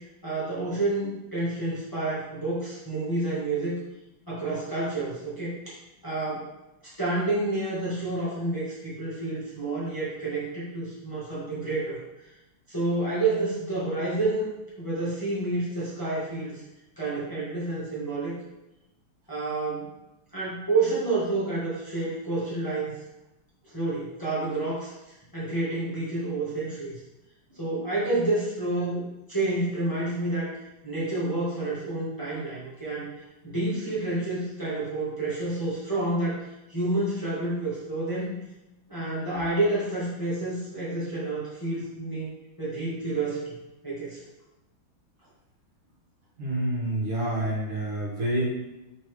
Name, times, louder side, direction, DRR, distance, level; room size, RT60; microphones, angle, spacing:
voice 1, 0.2-3.8 4.3-5.8 6.0-6.5 6.8-12.0 12.7-14.5 14.8-16.6 17.0-18.4 19.3-19.9 20.3-22.9 23.7-24.9 25.3-27.0 27.5-30.5 30.8-33.1 33.4-36.4 36.7-38.3 38.9-43.5 43.8-44.2, right 2 dB, 10° left, -10 dB, 1.7 m, -29 dB
voice 2, 46.4-48.5, right 1 dB, 70° right, -5 dB, 2.4 m, -28 dB
4.5 x 4.3 x 4.9 m, 0.96 s
omnidirectional pair, 2.4 m